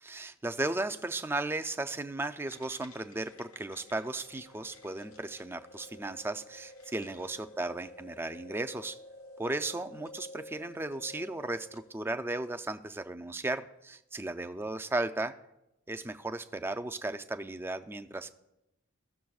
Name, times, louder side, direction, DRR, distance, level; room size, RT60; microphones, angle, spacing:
voice 1, 0.0-9.0 9.4-15.4 15.9-18.3, right 2 dB, 10° right, 8 dB, 0.3 m, -35 dB
sound 1, 2.4-12.0, left 1 dB, 85° left, 1.2 m, -51 dB
16.5 x 6.6 x 2.3 m, 0.90 s
head